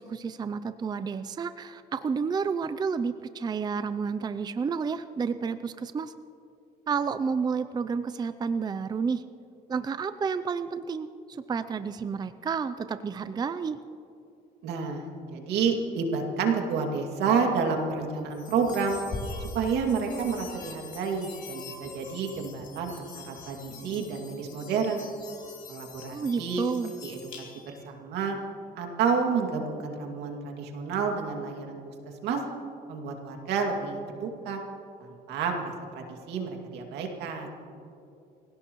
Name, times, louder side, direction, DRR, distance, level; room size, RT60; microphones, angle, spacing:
voice 1, 0.0-6.1 6.9-9.2 9.7-13.8 26.1-26.9, right 5 dB, 25° right, 12 dB, 0.5 m, -30 dB
voice 2, 14.6-19.0 19.4-25.0 25.7-26.6 27.0-28.4 28.8-31.8 32.2-32.4 32.9-34.6 35.0-37.6, right 5 dB, 80° right, 2 dB, 2.4 m, -30 dB
sound 1, 18.3-27.8, left 4 dB, 50° left, 2.8 m, -43 dB
26.5 x 16.5 x 3.1 m, 2.7 s
cardioid pair, 110°, 17 cm